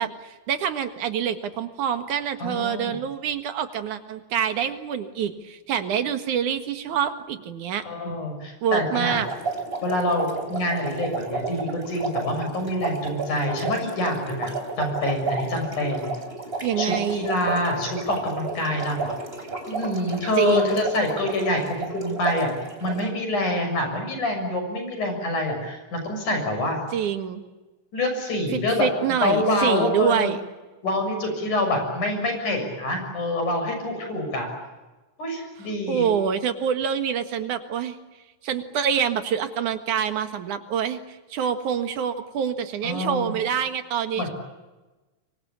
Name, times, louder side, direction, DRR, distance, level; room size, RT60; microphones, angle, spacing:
voice 1, 0.0-7.9 8.6-9.3 16.6-17.3 20.4-20.8 26.9-27.4 28.5-30.4 35.9-38.0 38.4-44.3, right 8 dB, 80° right, 9 dB, 3.1 m, -26 dB
voice 2, 2.4-2.9 7.8-9.2 9.8-16.1 16.8-19.1 19.7-22.5 22.8-26.8 27.9-28.9 29.2-30.3 30.8-34.5 35.2-36.1 42.8-43.3 44.2-44.3, left 1 dB, 80° left, 4 dB, 8.1 m, -26 dB
sound 1, 9.1-23.1, right 3 dB, 20° right, 3.5 m, -32 dB
25.0 x 24.0 x 8.7 m, 1.2 s
omnidirectional pair, 3.5 m